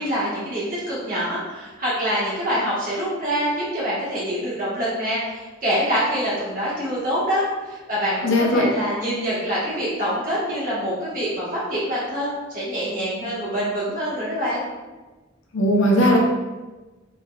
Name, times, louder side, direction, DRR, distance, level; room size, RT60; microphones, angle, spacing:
voice 1, 0.0-14.6, equal, 45° right, -9 dB, 1.4 m, -25 dB
voice 2, 8.2-8.7 15.5-16.2, left 1 dB, 80° left, -1 dB, 0.8 m, -18 dB
3.8 x 3.2 x 2.4 m, 1.2 s
head